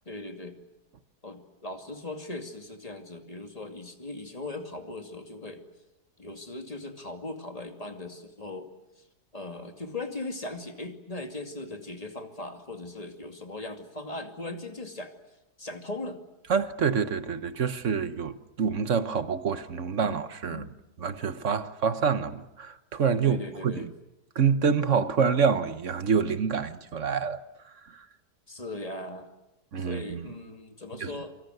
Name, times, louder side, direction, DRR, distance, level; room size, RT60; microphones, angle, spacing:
voice 1, 0.1-0.5 1.2-5.6 6.2-8.7 9.0-9.1 9.3-15.2 15.6-16.2 20.0-20.2 20.5-20.7 23.2-23.9 28.5-29.3 29.8-31.4, left 2 dB, 20° left, 2.6 m, -39 dB
voice 2, 16.5-20.7 21.0-23.4 23.6-23.9 24.3-27.4 27.9-28.0 29.7-30.3 31.0-31.1, right 6 dB, 50° right, 1.4 m, -27 dB
27.5 x 25.5 x 7.9 m
omnidirectional pair, 1.8 m